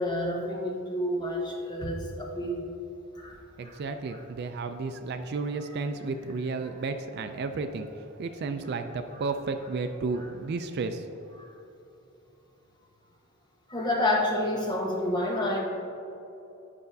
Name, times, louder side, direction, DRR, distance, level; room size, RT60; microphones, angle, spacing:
voice 1, 0.0-2.7 3.2-3.3 3.6-3.8 11.4-11.5 13.7-15.6, left 1 dB, 20° left, -3 dB, 1.0 m, -29 dB
voice 2, 3.6-11.1, right 4 dB, 50° right, 8 dB, 0.3 m, -33 dB
9.8 x 5.7 x 2.7 m, 2.9 s
head